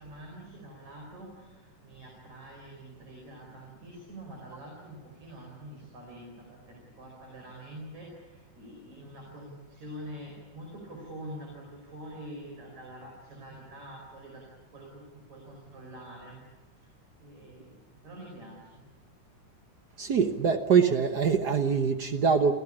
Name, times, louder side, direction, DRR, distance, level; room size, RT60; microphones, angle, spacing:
voice 1, 0.0-14.5 14.7-16.4 16.8-16.9 17.2-18.9, right 1 dB, 60° right, 6.4 m, -46 dB
voice 2, 20.0-22.5, right 6 dB, 90° right, 0.8 m, -24 dB
29.0 x 17.0 x 9.9 m
omnidirectional pair, 3.7 m